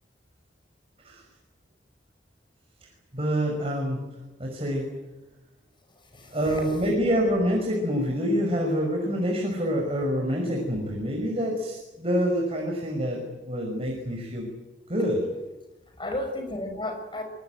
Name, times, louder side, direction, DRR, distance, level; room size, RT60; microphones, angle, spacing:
voice 1, 3.1-4.0 4.4-4.9 6.3-14.5 14.9-15.3, equal, 35° right, 1 dB, 5.6 m, -26 dB
voice 2, 6.1-6.7 16.0-17.2, left 1 dB, 25° left, 4 dB, 5.8 m, -33 dB
24.0 x 22.5 x 9.4 m, 1.1 s
head